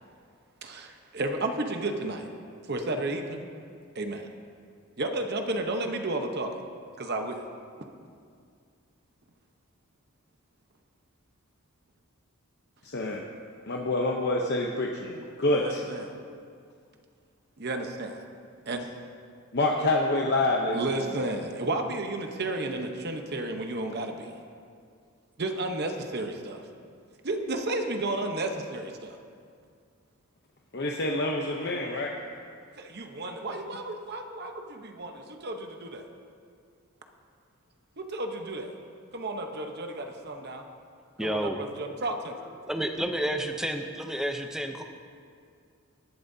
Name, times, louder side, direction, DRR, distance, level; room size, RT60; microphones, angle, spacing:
voice 1, 0.6-2.3 2.7-3.4 3.9-4.3 5.0-6.5 7.0-7.4 15.5-16.2 17.6-18.2 18.7-18.9 20.7-24.3 25.4-26.6 27.2-29.2 32.8-36.0 38.0-38.7 39.1-40.6 41.2-42.4, right 2 dB, 50° right, 4 dB, 0.9 m, -32 dB
voice 2, 12.8-13.2 13.7-15.8 19.5-21.1 30.7-32.1, left 2 dB, 50° left, -1 dB, 0.8 m, -27 dB
voice 3, 41.2-41.6 42.6-44.8, right 1 dB, ahead, 4 dB, 0.6 m, -30 dB
19.0 x 12.0 x 2.7 m, 2.3 s
head